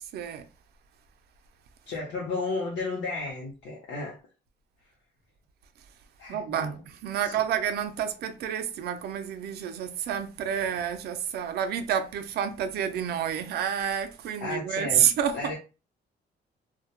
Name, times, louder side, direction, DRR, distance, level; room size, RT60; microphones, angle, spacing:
voice 1, 0.1-0.4 6.3-6.7 7.0-15.5, right 9 dB, 65° right, 0.4 m, -29 dB
voice 2, 1.9-4.2 6.2-6.8 7.2-7.4 14.4-15.0 15.3-15.5, left 3 dB, 90° left, 0.7 m, -33 dB
2.2 x 2.0 x 2.8 m
cardioid pair, 165°, 18 cm